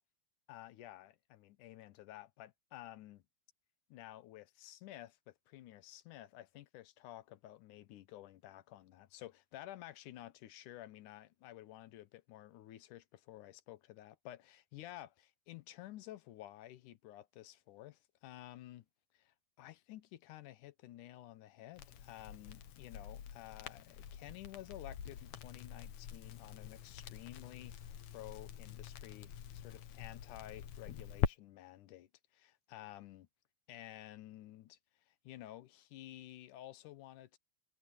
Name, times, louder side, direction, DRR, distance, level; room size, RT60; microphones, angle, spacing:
voice 1, 0.5-3.2 3.9-18.9 19.1-27.7 28.1-33.3 33.7-34.8 35.1-37.4, left 14 dB, 90° left, 2.5 m, -52 dB
Crackle, 21.8-31.3, left 9 dB, 65° left, 2.4 m, -44 dB
omnidirectional pair, 3.5 m